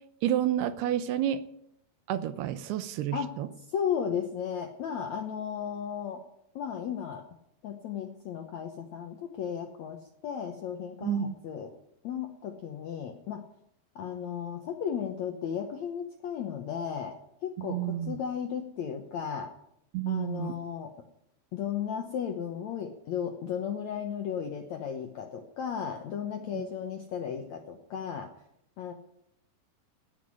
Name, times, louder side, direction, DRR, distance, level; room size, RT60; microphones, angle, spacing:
voice 1, 0.2-1.4 2.1-3.5 11.0-11.3 17.6-18.2 19.9-20.6 26.5-26.6, right 11 dB, 80° right, 12 dB, 2.8 m, -30 dB
voice 2, 3.7-6.2 6.6-7.2 7.6-11.7 12.0-13.4 14.0-17.2 17.4-19.5 20.1-20.9 21.5-28.3 28.8-28.9, left 8 dB, 70° left, 4 dB, 1.7 m, -35 dB
17.5 x 6.4 x 9.8 m, 0.75 s
omnidirectional pair, 4.7 m